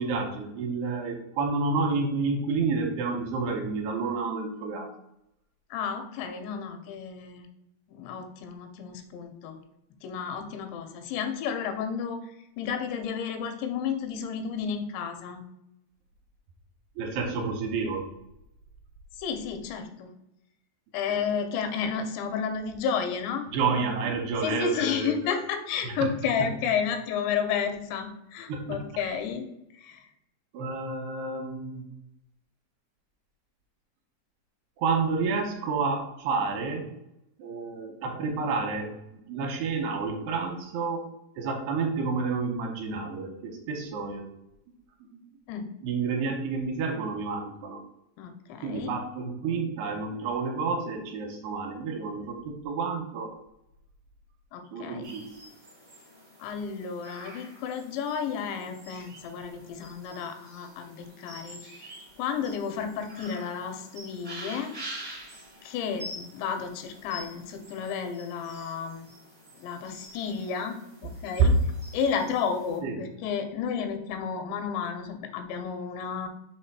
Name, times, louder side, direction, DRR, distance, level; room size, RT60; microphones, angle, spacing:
voice 1, 0.0-4.9 17.0-18.1 21.1-21.2 23.5-25.4 25.8-26.1 26.4-26.5 28.5-28.8 30.5-31.8 34.8-36.9 37.4-41.0 41.4-44.2 45.0-45.3 45.8-47.8 48.6-53.3 54.7-55.2 71.4-71.5 72.8-73.0, right 4 dB, 75° right, 2 dB, 2.7 m, -29 dB
voice 2, 5.7-7.5 7.9-9.6 10.0-12.2 12.6-15.4 19.2-20.1 20.9-23.5 24.4-29.5 29.8-30.1 45.5-45.7 48.2-48.9 54.5-55.1 56.4-64.7 65.6-69.1 69.6-71.5 71.9-76.3, left 6 dB, 90° left, 7 dB, 3.0 m, -32 dB
sound 1, 55.0-72.8, right 1 dB, 45° right, 0.5 m, -47 dB
6.5 x 3.3 x 4.6 m, 0.84 s
omnidirectional pair, 5.0 m